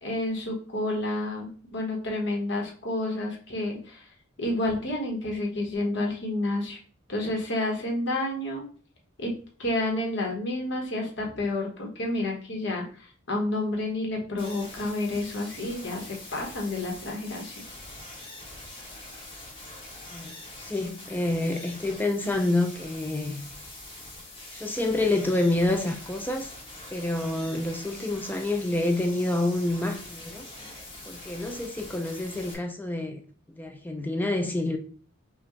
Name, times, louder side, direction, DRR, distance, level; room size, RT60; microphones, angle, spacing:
voice 1, 0.0-4.1 4.4-6.8 7.1-8.6 9.2-9.3 9.6-17.5, left 1 dB, 60° left, 1.3 m, -30 dB
sound 1, 14.4-32.5, left 2 dB, 25° left, 1.3 m, -44 dB
voice 2, 20.6-23.4 24.5-26.6 26.9-30.5 31.1-33.2 33.6-34.8, left 2 dB, 10° left, 0.4 m, -28 dB
5.7 x 2.5 x 3.1 m
head